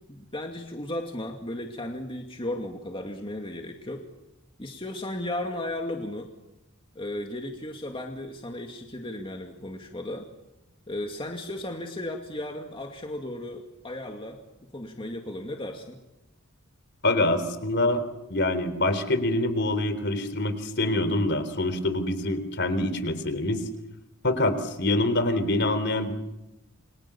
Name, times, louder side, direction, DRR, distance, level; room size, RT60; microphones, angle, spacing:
voice 1, 0.1-4.1 4.6-6.3 7.0-10.3 10.9-14.4 14.7-16.0, left 1 dB, 25° left, 2 dB, 2.3 m, -35 dB
voice 2, 17.0-18.0 18.3-23.6 24.2-26.1, left 2 dB, 50° left, 11 dB, 3.7 m, -25 dB
29.5 x 24.0 x 7.0 m, 0.94 s
head